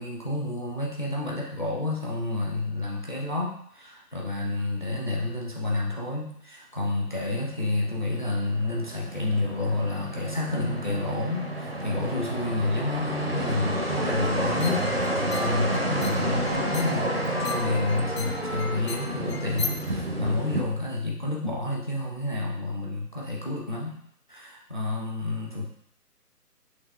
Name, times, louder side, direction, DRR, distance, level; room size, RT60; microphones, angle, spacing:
voice 1, 0.0-14.9 15.3-24.0 24.3-25.7, left 2 dB, 30° left, -2 dB, 0.5 m, -29 dB
sound 1, 7.2-20.6, right 1 dB, 40° right, 0.4 m, -30 dB
Wind instrument woodwind instrument, 13.1-19.8, left 2 dB, 60° left, 0.8 m, -38 dB
sound 2, 14.4-19.9, left 5 dB, 90° left, 0.6 m, -39 dB
5.9 x 2.9 x 2.2 m, 0.67 s
figure-of-eight pair, 150°, 48 cm